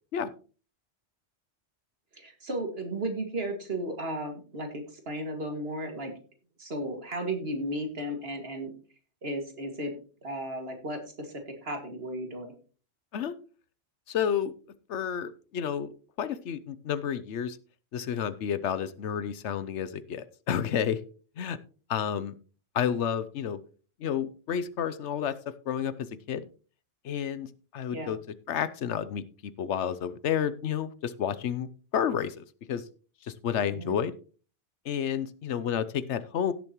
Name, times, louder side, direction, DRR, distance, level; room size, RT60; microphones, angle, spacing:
voice 1, 2.1-6.1 6.6-8.7 9.2-9.9 10.2-12.5 27.9-28.1 33.6-34.0, right 1 dB, 60° right, 4 dB, 2.4 m, -34 dB
voice 2, 14.1-14.5 14.9-17.6 17.9-21.0 21.4-21.6 21.9-22.4 22.7-23.6 24.0-26.5 27.0-28.2 28.5-31.7 31.9-32.8 33.3-34.1 34.8-36.5, left 8 dB, 75° left, 15 dB, 1.0 m, -30 dB
16.5 x 7.1 x 3.0 m, 0.38 s
omnidirectional pair, 1.2 m